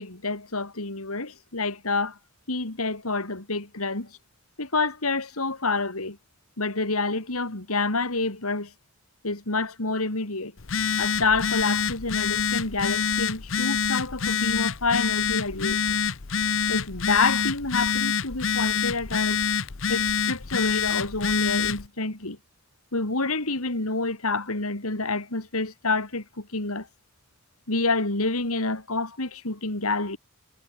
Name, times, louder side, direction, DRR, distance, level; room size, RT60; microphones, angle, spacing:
voice 1, 0.0-2.2 2.5-4.1 4.6-6.2 6.6-8.7 9.2-10.5 11.0-16.0 16.7-19.4 19.9-22.4 22.9-26.9 27.7-30.2, left 3 dB, 75° left, 3.5 m, -28 dB
Telephone, 10.6-21.9, left 6 dB, 60° left, 1.0 m, -26 dB
head